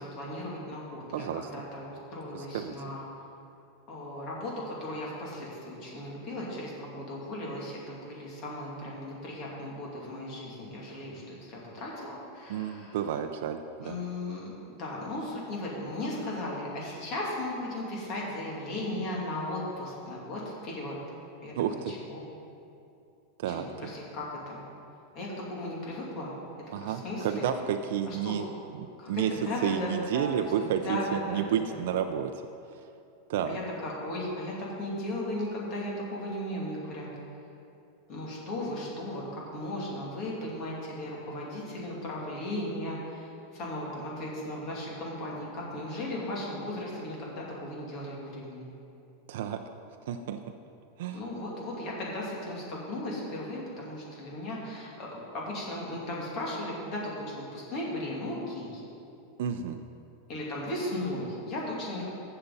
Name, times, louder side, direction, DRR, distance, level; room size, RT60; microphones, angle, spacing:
voice 1, 0.0-3.0 3.9-13.0 13.8-21.0 21.4-21.5 21.9-22.2 23.5-24.6 25.1-26.3 26.8-27.5 28.1-28.4 29.0-30.3 30.6-31.6 33.4-37.1 38.1-48.7 51.1-58.8 60.3-62.0, left 1 dB, 35° left, -4 dB, 2.6 m, -36 dB
voice 2, 1.1-1.5 2.3-2.7 12.5-14.0 21.5-21.9 23.4-23.7 26.7-28.4 29.1-29.3 29.6-32.3 32.7-32.9 33.3-33.6 49.3-49.6 50.1-50.4 51.0-51.2 59.4-59.8, right 9 dB, 65° right, 6 dB, 0.5 m, -31 dB
15.0 x 6.7 x 4.1 m, 2.6 s
supercardioid pair, 165°, 0 cm